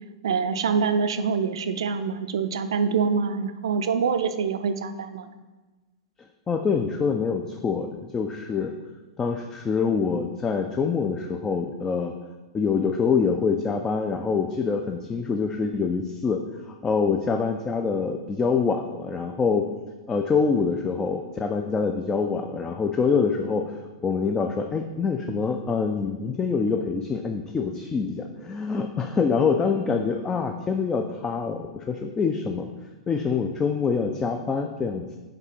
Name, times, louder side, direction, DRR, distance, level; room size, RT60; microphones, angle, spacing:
voice 1, 0.2-5.3, right 5 dB, 60° right, 9 dB, 0.4 m, -25 dB
voice 2, 6.5-8.7 9.2-12.1 12.5-16.4 16.7-19.7 20.1-32.7 33.1-35.1, left 5 dB, 15° left, 5 dB, 0.3 m, -25 dB
5.3 x 4.9 x 4.0 m, 1.2 s
figure-of-eight pair, 100°, 3 cm